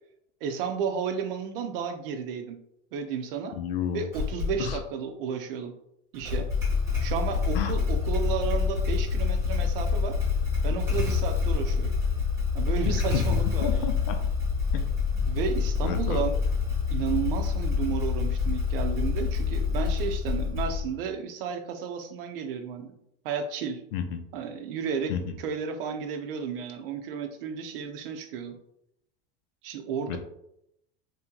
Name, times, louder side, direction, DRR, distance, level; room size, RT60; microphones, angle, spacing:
voice 1, 0.4-2.6 2.9-3.6 3.9-5.7 6.1-6.5 7.0-10.2 10.6-11.9 12.5-14.0 15.2-16.4 16.9-23.0 23.2-23.8 24.3-25.1 25.4-28.6 29.6-30.2, right 6 dB, 60° right, 6 dB, 0.7 m, -32 dB
voice 2, 3.5-4.1 4.6-4.8 7.5-7.8 12.8-13.2 13.6-14.2 14.7-14.8 15.8-16.2 23.9-24.2 25.1-25.4 30.1-30.2, left 8 dB, 60° left, 6 dB, 0.7 m, -31 dB
Motorcycle / Engine starting, 4.1-4.8 6.1-21.0, left 5 dB, 10° right, 1.1 m, -27 dB
3.4 x 2.9 x 3.7 m, 0.77 s
supercardioid pair, 180°, 32 cm